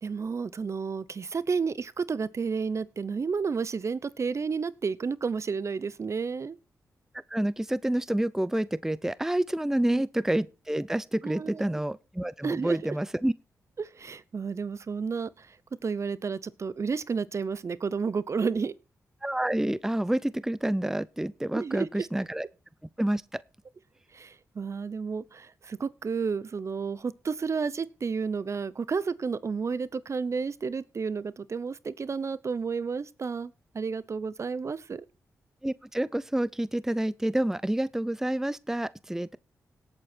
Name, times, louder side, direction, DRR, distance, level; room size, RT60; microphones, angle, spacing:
voice 1, 0.0-6.6 9.9-10.0 11.2-11.8 12.4-12.9 13.8-15.6 15.8-18.7 21.5-22.1 24.1-35.0, right 5 dB, 50° right, 0.7 m, -31 dB
voice 2, 7.3-13.3 19.2-22.5 23.0-23.4 35.6-39.4, right 1 dB, 5° right, 0.5 m, -28 dB
17.5 x 8.0 x 4.4 m
cardioid pair, 60°, 6 cm